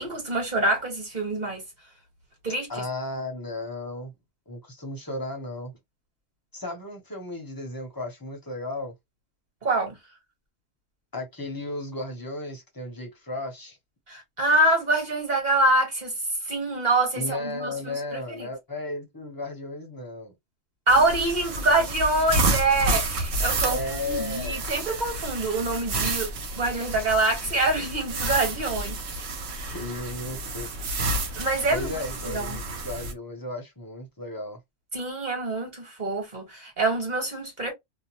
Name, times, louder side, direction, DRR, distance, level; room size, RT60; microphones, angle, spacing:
voice 1, 0.0-1.6 2.4-2.8 9.6-9.9 14.1-16.1 16.5-18.5 20.9-26.3 26.6-29.0 29.5-29.8 31.4-32.6 34.9-37.7, right 2 dB, 35° right, 1.4 m, -25 dB
voice 2, 2.7-4.1 4.5-5.7 6.5-8.9 11.1-13.8 17.2-20.3 23.6-24.6 29.7-30.7 31.7-34.6, left 2 dB, 20° left, 0.7 m, -34 dB
sound 1, 20.9-33.1, right 2 dB, 60° right, 0.9 m, -30 dB
2.7 x 2.1 x 2.9 m
omnidirectional pair, 1.3 m